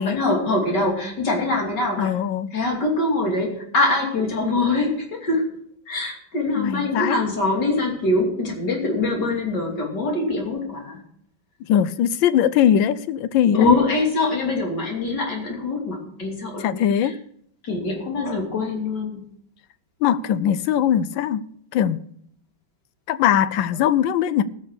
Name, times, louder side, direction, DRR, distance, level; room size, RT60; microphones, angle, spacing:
voice 1, 0.0-2.1 2.5-5.4 5.9-11.0 13.5-17.1 17.6-19.2, left 2 dB, 55° left, 3.5 m, -23 dB
voice 2, 2.0-2.5 6.6-7.2 11.6-13.7 16.6-17.2 20.0-21.4 21.7-22.1 23.1-24.4, left 9 dB, 75° left, 1.3 m, -20 dB
17.0 x 6.3 x 6.8 m
omnidirectional pair, 2.2 m